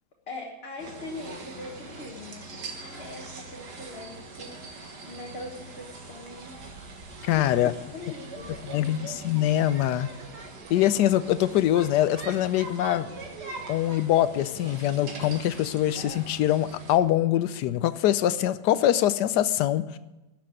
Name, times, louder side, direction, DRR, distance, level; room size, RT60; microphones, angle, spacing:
voice 1, 0.3-6.7 7.5-9.2, left 2 dB, 35° left, -1 dB, 1.5 m, -42 dB
sound 1, 0.8-17.0, right 3 dB, 65° right, 2.1 m, -42 dB
voice 2, 7.2-7.7 8.7-10.1 10.7-13.1 13.7-20.0, left 12 dB, 75° left, 14 dB, 1.1 m, -23 dB
12.0 x 6.7 x 9.4 m, 1.1 s
omnidirectional pair, 1.9 m